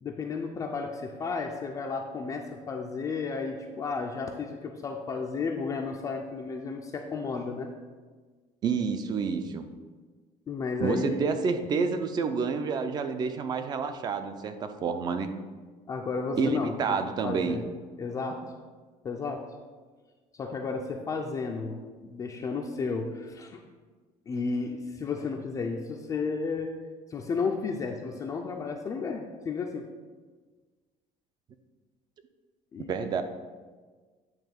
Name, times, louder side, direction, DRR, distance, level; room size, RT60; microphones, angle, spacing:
voice 1, 0.0-7.7 10.5-11.3 15.9-17.7 18.0-18.4 19.0-19.4 20.4-23.6 24.3-26.7 27.1-29.9 32.7-32.9, left 4 dB, 25° left, 1 dB, 0.4 m, -33 dB
voice 2, 8.6-9.7 10.8-15.3 16.4-17.6 32.9-33.2, right 5 dB, 30° right, 9 dB, 0.5 m, -29 dB
9.0 x 3.1 x 5.8 m, 1.4 s
cardioid pair, 175°, 13 cm